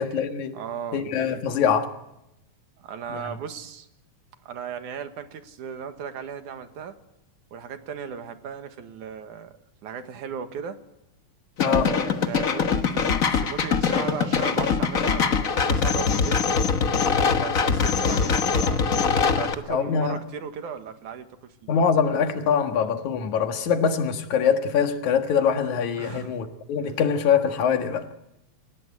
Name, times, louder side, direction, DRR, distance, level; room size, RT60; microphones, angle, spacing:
voice 1, 0.0-0.6 0.9-1.9 3.1-3.2 11.6-11.9 19.7-20.2 21.7-28.1, left 7 dB, 75° left, 3.0 m, -23 dB
voice 2, 0.5-1.0 2.8-3.9 4.5-7.0 7.5-9.5 9.8-10.8 11.6-16.4 17.1-19.0 19.4-21.8 26.0-26.3, right 7 dB, 85° right, 3.0 m, -36 dB
sound 1, 11.6-19.5, left 5 dB, 55° left, 0.9 m, -23 dB
27.5 x 16.5 x 9.5 m
omnidirectional pair, 3.4 m